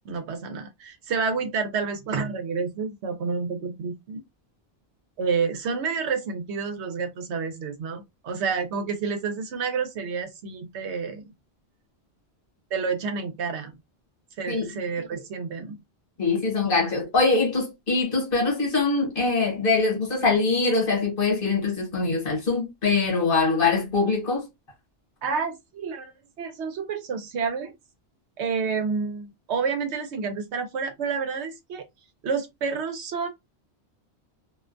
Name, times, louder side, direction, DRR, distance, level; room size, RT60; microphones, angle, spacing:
voice 1, 0.0-4.2 5.2-11.2 12.7-13.8 14.4-15.8 25.2-27.7 28.4-31.8 32.2-33.3, right 5 dB, 80° right, 0.9 m, -29 dB
voice 2, 16.2-24.5, left 3 dB, 55° left, 1.2 m, -23 dB
2.4 x 2.2 x 2.4 m
omnidirectional pair, 1.1 m